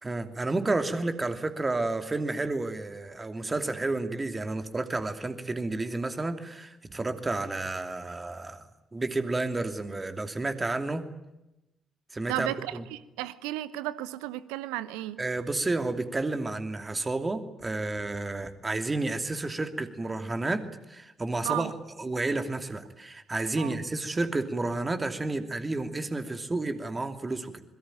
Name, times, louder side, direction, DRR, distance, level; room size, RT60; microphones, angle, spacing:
voice 1, 0.0-8.6 8.9-11.0 12.1-12.8 15.2-20.6 20.9-21.7 22.0-27.6, right 2 dB, 25° right, 7 dB, 2.8 m, -31 dB
voice 2, 12.3-15.2 21.4-21.7 23.6-23.8, right 15 dB, 70° right, 16 dB, 1.1 m, -34 dB
25.5 x 22.5 x 9.1 m, 0.95 s
figure-of-eight pair, 45°, 0 cm